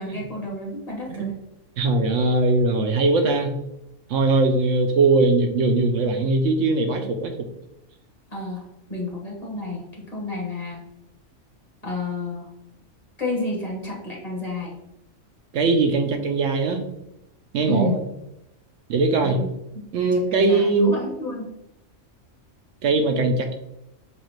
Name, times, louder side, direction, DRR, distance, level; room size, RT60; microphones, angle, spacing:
voice 1, 0.0-1.4 8.3-10.8 11.8-12.5 13.2-14.8 17.7-18.0 19.2-19.5 20.0-21.5, left 1 dB, 30° left, -3 dB, 1.3 m, -30 dB
voice 2, 1.8-3.6 4.1-7.4 15.5-16.8 17.5-17.9 18.9-19.4 19.9-20.9 22.8-23.5, right 3 dB, 75° right, 5 dB, 0.9 m, -20 dB
7.1 x 2.4 x 3.1 m, 0.86 s
omnidirectional pair, 1.3 m